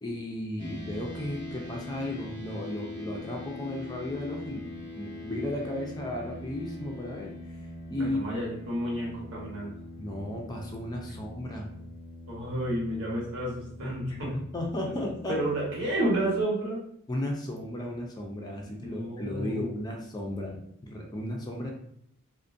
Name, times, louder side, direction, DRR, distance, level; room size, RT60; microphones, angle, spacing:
voice 1, 0.0-7.3 7.9-8.2 10.0-11.7 14.5-15.4 17.1-21.7, left 1 dB, 20° left, 0 dB, 0.4 m, -34 dB
sound 1, 0.6-16.4, left 1 dB, 25° right, 0.7 m, -43 dB
voice 2, 8.0-9.7 12.3-14.3 14.9-15.0 15.3-16.8 18.8-19.7, right 1 dB, 75° right, -5 dB, 1.0 m, -31 dB
2.4 x 2.1 x 2.5 m, 0.71 s
head